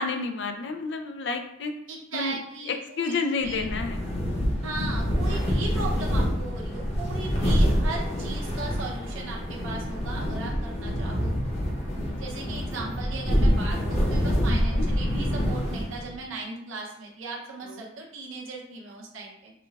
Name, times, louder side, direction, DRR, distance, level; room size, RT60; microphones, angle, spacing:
voice 1, 0.0-1.7 2.1-2.3 3.0-4.0 14.5-14.9, left 4 dB, 60° left, 6 dB, 0.4 m, -30 dB
voice 2, 1.9-3.7 4.6-11.6 12.2-19.5, right 3 dB, 90° right, -2 dB, 0.9 m, -37 dB
sound 1, 3.4-16.2, equal, 30° left, 0.8 m, -26 dB
5.9 x 2.2 x 3.4 m, 0.78 s
head